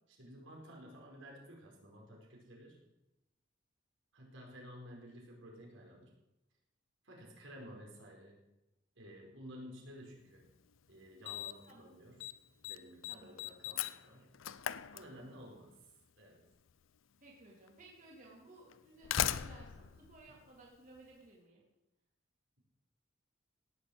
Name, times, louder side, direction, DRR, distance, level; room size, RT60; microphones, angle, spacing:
voice 1, 0.1-2.8 4.1-6.2 7.0-8.4 9.0-10.4 10.9-12.3 12.6-14.3 14.9-15.7 16.2-16.4 20.2-20.3, equal, 75° right, -1 dB, 4.8 m, -53 dB
Slam, 10.4-10.5 11.3-11.7 12.0-12.3 12.6-15.6 16.7-16.8 17.7-17.8 18.7-21.1, left 10 dB, 85° left, 0.6 m, -39 dB
voice 2, 13.1-13.4 15.2-15.5 17.2-21.6, right 2 dB, 40° right, -3 dB, 3.2 m, -58 dB
17.5 x 7.2 x 8.1 m, 0.93 s
head